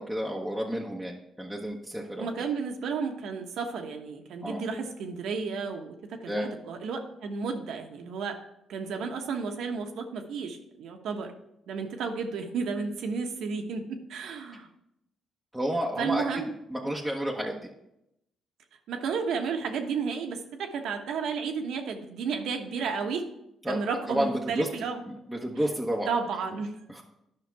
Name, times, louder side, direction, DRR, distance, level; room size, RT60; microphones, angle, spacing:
voice 1, 0.0-2.3 4.4-4.6 6.3-6.5 15.5-16.4 16.7-17.5 23.6-23.8 24.1-24.7 25.3-26.1 26.9-27.0, equal, ahead, -2 dB, 1.1 m, -30 dB
voice 2, 2.2-8.4 8.7-11.3 11.7-14.7 16.0-16.5 18.9-23.2 23.6-25.0 26.1-27.0, right 5 dB, 75° right, 4 dB, 1.1 m, -32 dB
10.5 x 5.7 x 4.7 m, 0.83 s
cardioid pair, 90°, 0 cm